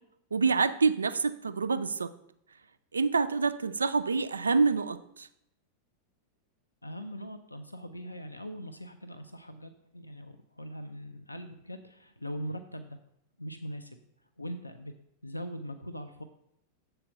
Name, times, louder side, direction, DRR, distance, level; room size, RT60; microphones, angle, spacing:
voice 1, 0.3-2.1 2.9-5.3, right 4 dB, 75° right, 12 dB, 0.4 m, -27 dB
voice 2, 6.8-13.0 13.4-14.0 14.4-14.9 15.2-16.2, equal, 85° left, 7 dB, 0.5 m, -41 dB
7.4 x 4.5 x 6.4 m, 0.76 s
figure-of-eight pair, 90°, 0 cm